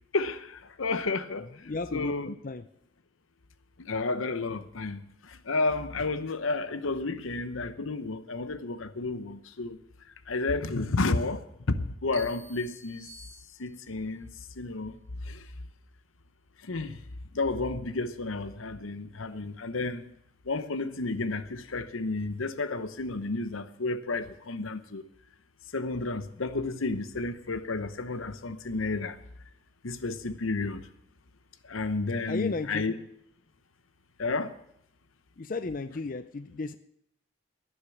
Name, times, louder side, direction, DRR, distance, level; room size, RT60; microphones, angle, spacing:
voice 1, 0.1-1.5 1.9-2.3 3.9-5.0 5.5-9.8 10.3-11.4 11.8-13.1 13.6-14.3 14.6-14.9 15.3-15.4 16.7-16.9 17.3-20.0 20.5-25.0 25.7-29.2 29.8-30.8 31.7-32.9 34.2-34.5, left 3 dB, 85° left, 0.9 m, -31 dB
voice 2, 1.4-2.7 32.3-32.8 35.4-36.8, left 3 dB, 40° left, 0.5 m, -34 dB
sound 1, 12.1-14.0, right 3 dB, 30° right, 2.5 m, -51 dB
11.5 x 10.0 x 7.3 m
head